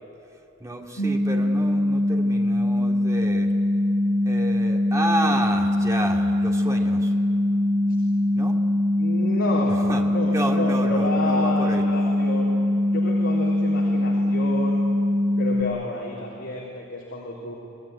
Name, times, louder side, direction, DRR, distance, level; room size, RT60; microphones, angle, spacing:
voice 1, 0.6-3.5 4.2-7.1 8.4-8.6 9.6-11.8, right 1 dB, 15° right, 0 dB, 2.3 m, -30 dB
sound 1, 1.0-15.6, left 1 dB, 75° left, 2.4 m, -22 dB
voice 2, 9.0-9.7 10.1-12.5 12.9-14.8 15.4-17.5, left 2 dB, 60° left, -4 dB, 3.9 m, -30 dB
26.5 x 19.0 x 9.9 m, 2.8 s
head